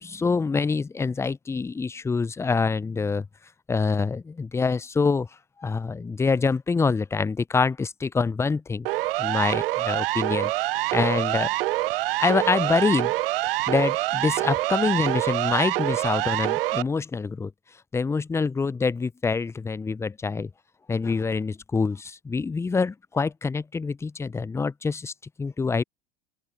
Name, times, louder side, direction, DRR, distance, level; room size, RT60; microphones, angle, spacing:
voice 1, 0.0-3.3 3.7-5.3 5.6-8.9 9.2-10.5 10.9-11.5 12.2-13.1 13.7-17.5 17.9-20.5 20.9-25.1 25.4-25.8, left 4 dB, 10° left, 0.5 m, -25 dB
Siren, 8.9-16.8, right 18 dB, 65° right, 0.5 m, -26 dB
open air
figure-of-eight pair, 80°, 30 cm